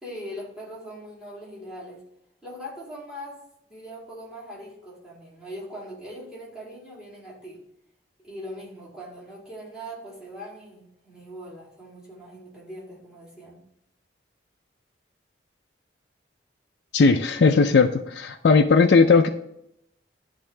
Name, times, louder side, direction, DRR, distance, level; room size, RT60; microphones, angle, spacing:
voice 1, 0.0-2.0 2.4-7.6 8.2-13.6, equal, 5° right, -7 dB, 2.6 m, -41 dB
voice 2, 16.9-19.3, left 4 dB, 60° left, 5 dB, 0.4 m, -17 dB
10.0 x 3.6 x 3.3 m, 0.77 s
head